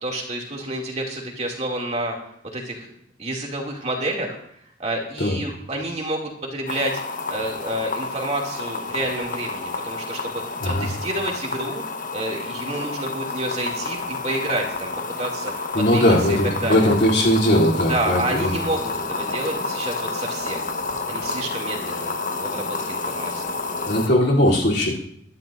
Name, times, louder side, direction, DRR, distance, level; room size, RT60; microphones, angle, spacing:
voice 1, 0.0-2.9 3.2-4.4 4.8-7.0 7.3-11.8 12.1-14.9 15.2-16.9 17.9-20.7 21.1-23.4, right 1 dB, 35° right, 0 dB, 2.5 m, -29 dB
sound 1, 6.7-24.1, left 3 dB, 45° left, 1.3 m, -30 dB
voice 2, 15.7-18.5 23.9-25.0, left 1 dB, 65° left, -4 dB, 3.2 m, -19 dB
23.0 x 12.0 x 2.6 m, 0.69 s
head